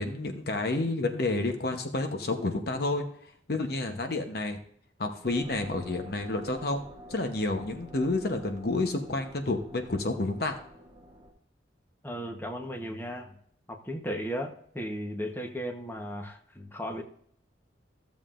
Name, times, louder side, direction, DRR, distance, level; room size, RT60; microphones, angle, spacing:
voice 1, 0.0-3.0 3.5-4.6 5.0-10.6, left 2 dB, 55° left, 6 dB, 0.9 m, -30 dB
sound 1, 5.2-11.3, equal, 25° right, 1.4 m, -49 dB
voice 2, 12.0-13.3 13.7-17.0, equal, 10° left, 2 dB, 1.0 m, -36 dB
14.5 x 7.3 x 2.5 m, 0.64 s
head